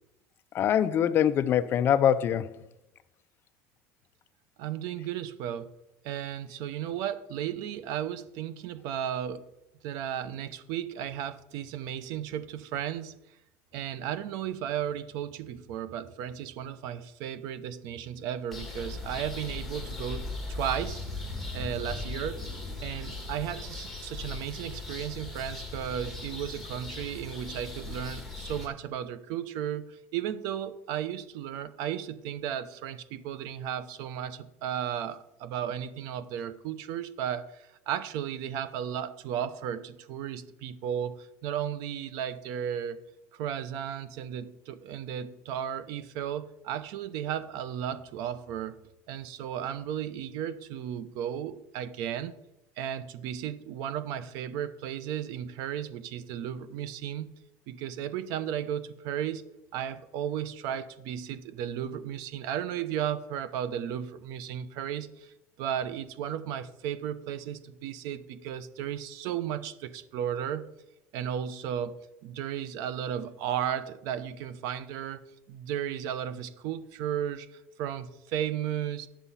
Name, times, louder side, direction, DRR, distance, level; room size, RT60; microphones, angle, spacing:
voice 1, 0.5-2.6, left 9 dB, 35° left, 0.5 m, -24 dB
voice 2, 4.6-5.7 6.0-9.4 9.8-13.2 13.7-21.0 21.5-22.4 22.8-43.0 43.3-48.7 49.1-52.4 52.8-57.3 57.7-59.4 59.7-65.3 65.6-70.6 71.1-75.2 75.5-79.1, right 9 dB, 65° right, 0.8 m, -34 dB
sound 1, 18.5-28.7, left 2 dB, ahead, 2.2 m, -38 dB
10.5 x 7.0 x 5.6 m
cardioid pair, 150°, 7 cm